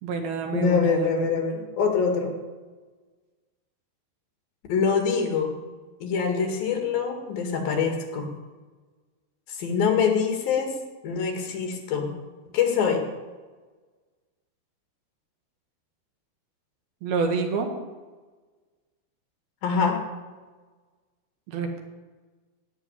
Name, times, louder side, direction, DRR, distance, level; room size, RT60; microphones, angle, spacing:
voice 1, 0.0-1.3 17.0-17.7 21.5-21.8, right 5 dB, 70° right, 4 dB, 3.6 m, -28 dB
voice 2, 0.5-2.4 4.7-5.5 6.0-8.3 9.5-10.7 11.0-12.1 12.5-13.1 19.6-20.0, left 6 dB, 65° left, 3 dB, 3.8 m, -24 dB
17.0 x 7.1 x 9.9 m, 1.3 s
omnidirectional pair, 4.6 m